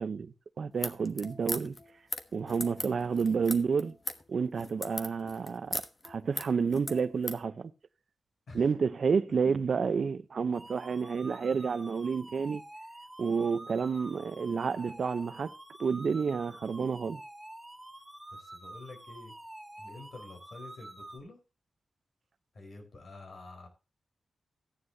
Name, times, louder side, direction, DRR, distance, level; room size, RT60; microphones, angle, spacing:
voice 1, 0.0-1.8 2.3-4.0 4.3-7.7 8.5-12.6 13.2-15.5 15.8-17.2, right 5 dB, 60° right, 0.7 m, -30 dB
sound 1, 0.7-7.4, left 2 dB, 35° left, 1.1 m, -39 dB
sound 2, 10.5-21.2, right 1 dB, 5° right, 2.6 m, -48 dB
voice 2, 18.3-19.3 19.8-21.4 22.5-23.7, left 2 dB, 60° left, 4.3 m, -48 dB
14.5 x 9.8 x 2.7 m
wide cardioid pair, 115°, 0 cm